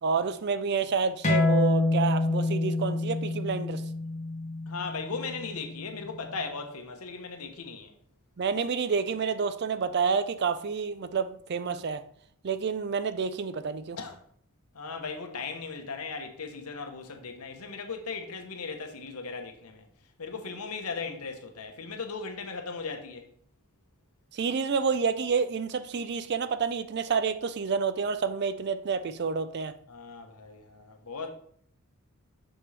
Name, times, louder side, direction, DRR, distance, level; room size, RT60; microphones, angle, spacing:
voice 1, 0.0-3.8 8.4-12.0 12.4-14.0 24.3-29.7, right 5 dB, 50° right, 0.4 m, -29 dB
sound 1, 1.2-6.4, left 2 dB, 30° left, 1.6 m, -27 dB
voice 2, 4.7-7.9 14.0-14.2 14.7-19.9 20.2-23.2 29.9-31.3, left 4 dB, 80° left, 1.0 m, -37 dB
6.3 x 6.0 x 3.3 m
head